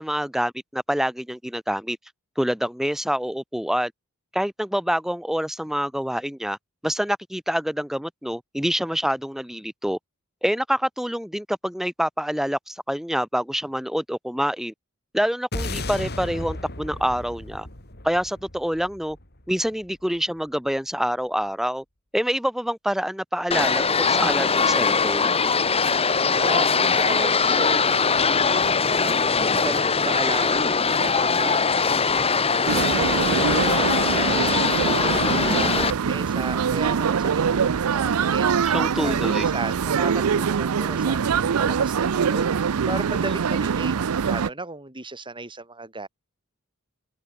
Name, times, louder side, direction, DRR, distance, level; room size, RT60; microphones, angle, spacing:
voice 1, 0.0-2.0 2.4-3.9 4.3-6.6 6.8-10.0 10.4-14.7 15.1-17.7 18.0-19.2 19.5-21.8 22.1-25.3 38.6-39.5, equal, ahead, 1.0 m, -26 dB
sound 1, 15.5-20.0, left 2 dB, 50° left, 6.2 m, -34 dB
sound 2, 23.5-35.9, left 5 dB, 25° left, 1.2 m, -21 dB
voice 2, 26.3-28.2 28.5-34.7 35.0-38.5 38.9-46.1, right 2 dB, 25° right, 6.1 m, -35 dB
sound 3, 32.7-44.5, right 6 dB, 80° right, 0.5 m, -23 dB
open air
head